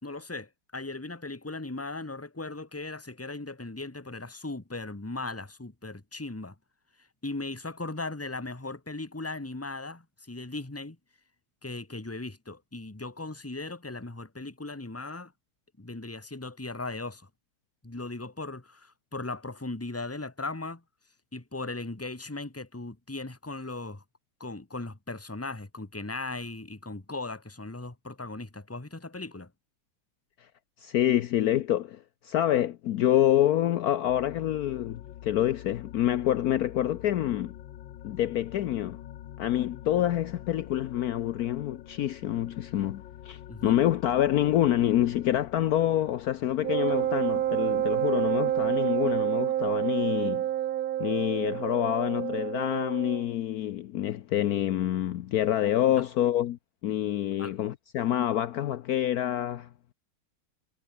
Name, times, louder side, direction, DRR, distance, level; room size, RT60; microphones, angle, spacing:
voice 1, 0.0-6.5 7.0-11.0 11.6-15.3 15.8-17.3 17.8-20.8 21.3-24.0 24.4-29.5 43.5-43.9 55.9-56.0 57.4-57.5, left 2 dB, 10° left, 1.3 m, -38 dB
voice 2, 30.8-37.5 38.0-39.0 39.4-50.4 51.0-59.7, left 12 dB, 80° left, 0.8 m, -27 dB
sound 1, 34.1-49.2, left 12 dB, 65° left, 1.6 m, -46 dB
Wind instrument woodwind instrument, 46.6-53.3, right 12 dB, 70° right, 0.8 m, -28 dB
omnidirectional pair, 2.4 m